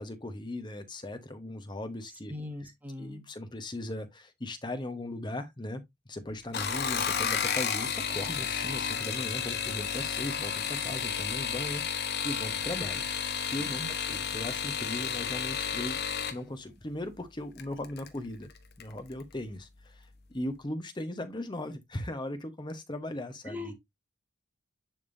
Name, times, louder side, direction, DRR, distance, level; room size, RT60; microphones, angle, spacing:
voice 1, 0.0-2.3 2.6-2.7 3.0-5.8 6.1-13.0 13.5-16.0 16.3-18.5 18.8-23.8, left 1 dB, 20° left, 0.9 m, -38 dB
voice 2, 2.3-3.2 13.8-13.9 23.5-23.8, left 2 dB, 10° right, 1.3 m, -40 dB
sound 1, 6.4-16.4 17.6-18.1 18.5-18.9 19.2-19.3, left 7 dB, 50° left, 0.9 m, -32 dB
10.5 x 3.5 x 2.6 m
head